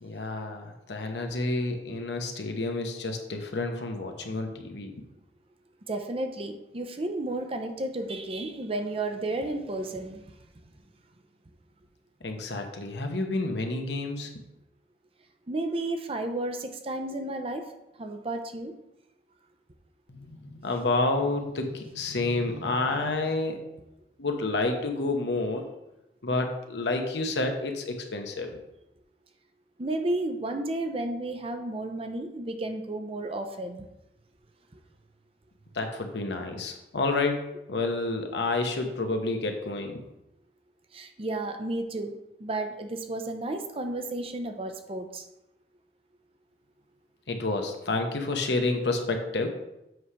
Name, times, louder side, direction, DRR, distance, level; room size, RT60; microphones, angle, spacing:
voice 1, 0.0-5.0 12.2-14.3 20.1-23.6 24.2-25.7 26.2-28.5 35.7-40.0 47.3-49.5, left 2 dB, 75° left, 4 dB, 1.0 m, -29 dB
voice 2, 5.9-10.2 15.5-17.7 18.0-18.7 29.8-33.9 34.7-34.8 40.9-42.1 42.4-45.3, right 2 dB, 35° right, 6 dB, 0.6 m, -32 dB
7.8 x 3.3 x 5.6 m, 0.90 s
head